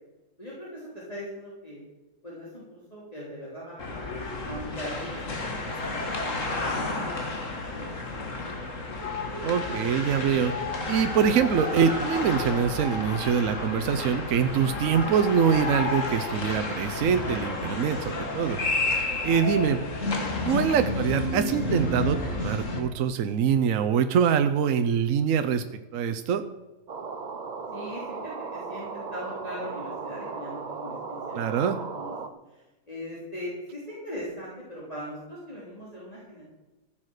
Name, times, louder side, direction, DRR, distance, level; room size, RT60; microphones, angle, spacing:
voice 1, 0.4-1.8 2.2-5.6 5.8-7.9 8.2-8.5 19.5-19.7 20.2-20.3 27.7-32.2 32.5-36.4, equal, 25° left, -7 dB, 3.5 m, -40 dB
sound 1, 3.8-22.8, left 2 dB, 60° left, 2.2 m, -31 dB
voice 2, 9.4-10.5 10.9-18.6 19.2-19.8 20.4-25.6 25.9-26.4 31.3-31.8, right 7 dB, 70° right, 8 dB, 1.1 m, -24 dB
sound 2, 26.9-32.3, right 4 dB, 40° right, 0.8 m, -36 dB
15.0 x 7.5 x 6.5 m, 1.1 s
omnidirectional pair, 1.5 m